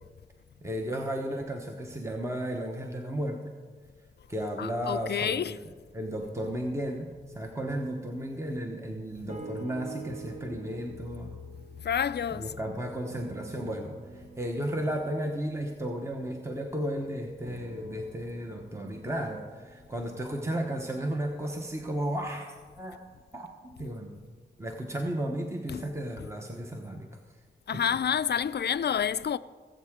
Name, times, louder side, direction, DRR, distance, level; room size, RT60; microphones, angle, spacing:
voice 1, 0.6-3.5 4.3-5.6 5.9-7.1 7.3-11.4 12.3-22.5 22.8-23.1 23.3-24.2 24.6-27.2 27.7-27.8, right 1 dB, 15° right, 1.0 m, -34 dB
voice 2, 4.6-5.6 11.8-12.5 25.7-25.9 27.7-29.4, left 8 dB, 65° left, 0.4 m, -29 dB
sound 1, 9.3-12.6 13.0-16.8 17.4-21.6 22.3-22.4, right 4 dB, 40° right, 1.1 m, -48 dB
19.0 x 8.0 x 3.7 m
wide cardioid pair, 60°, 19 cm